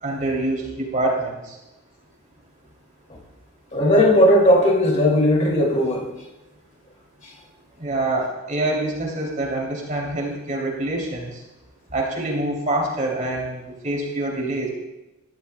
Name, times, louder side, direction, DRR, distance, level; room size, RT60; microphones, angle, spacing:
voice 1, 0.0-1.6 7.8-11.3 11.9-14.7, right 2 dB, 35° right, -1 dB, 3.0 m, -25 dB
voice 2, 3.7-6.1, equal, 35° left, -1 dB, 2.5 m, -17 dB
20.5 x 13.5 x 2.3 m, 0.98 s
head